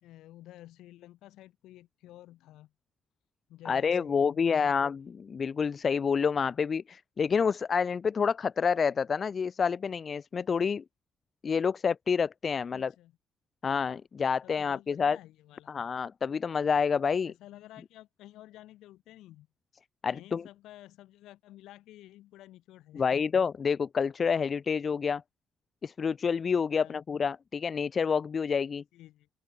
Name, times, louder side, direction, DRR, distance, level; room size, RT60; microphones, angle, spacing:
voice 1, 0.0-2.7 3.5-4.9 12.7-13.1 14.4-15.7 17.2-19.5 20.1-23.2 26.7-27.0 28.9-29.3, left 15 dB, 90° left, 1.5 m, -52 dB
voice 2, 3.7-10.8 11.4-12.9 13.6-15.2 15.7-17.3 20.0-20.4 22.9-25.2 25.8-28.8, left 6 dB, 45° left, 0.5 m, -28 dB
cardioid pair, 90°, 0 cm